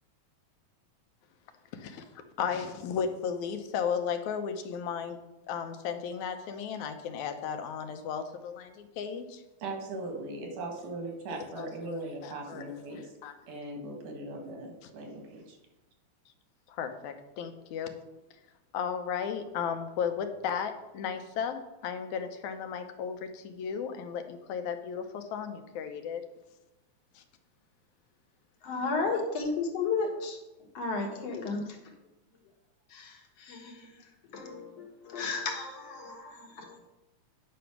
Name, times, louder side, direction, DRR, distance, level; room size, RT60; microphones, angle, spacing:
voice 1, 1.7-2.0 2.4-5.2 5.5-9.4 11.3-13.3 16.7-17.9 18.7-26.2 27.2-27.3, left 7 dB, 85° left, 7 dB, 2.3 m, -35 dB
voice 2, 9.6-13.1 13.5-15.6, right 2 dB, 85° right, 3 dB, 3.0 m, -39 dB
voice 3, 28.6-30.4 30.7-31.8 32.9-36.8, left 4 dB, 65° left, 2 dB, 2.4 m, -34 dB
9.8 x 5.2 x 5.9 m, 0.96 s
omnidirectional pair, 3.3 m